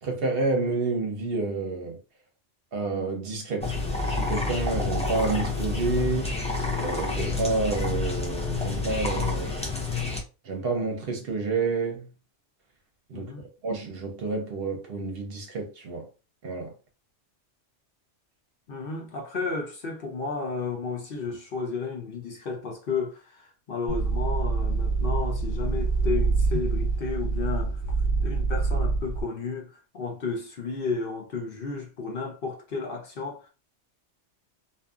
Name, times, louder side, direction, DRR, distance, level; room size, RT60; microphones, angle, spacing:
voice 1, 0.0-2.0 2.7-3.8 4.0-6.4 6.7-9.6 10.4-12.1 13.1-13.3 13.6-16.1 16.4-16.7, right 3 dB, 60° right, 0.8 m, -29 dB
sound 1, 3.6-10.2, left 3 dB, 10° left, 0.3 m, -29 dB
voice 2, 13.1-13.4 18.7-27.8 28.2-33.5, left 4 dB, 55° left, 0.8 m, -33 dB
sound 2, 23.9-29.2, right 4 dB, 80° left, 1.3 m, -26 dB
2.6 x 2.6 x 2.3 m
omnidirectional pair, 1.2 m